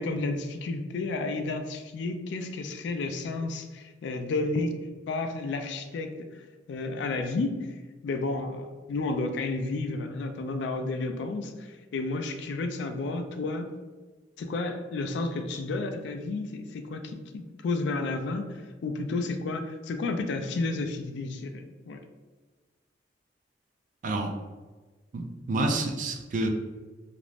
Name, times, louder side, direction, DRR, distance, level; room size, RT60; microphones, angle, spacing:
voice 1, 0.0-4.8 5.1-6.3 6.7-7.7 8.0-13.7 14.4-22.0, left 3 dB, 65° left, 6 dB, 0.3 m, -31 dB
voice 2, 24.0-24.4 25.1-26.5, right 2 dB, 45° right, 5 dB, 0.3 m, -28 dB
2.4 x 2.0 x 3.1 m, 1.3 s
head